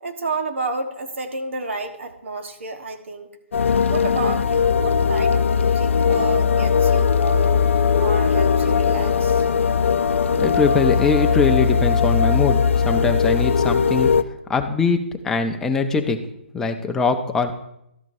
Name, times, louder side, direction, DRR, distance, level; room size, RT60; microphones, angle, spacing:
voice 1, 0.0-3.3 3.9-7.6 8.0-9.4, right 3 dB, 80° right, 6 dB, 1.3 m, -30 dB
sound 1, 3.5-14.2, left 6 dB, 85° left, 0.5 m, -19 dB
voice 2, 10.4-16.2 16.5-17.5, left 4 dB, 5° left, 4 dB, 0.5 m, -22 dB
12.5 x 10.5 x 2.7 m, 0.80 s
hypercardioid pair, 160°, 7 cm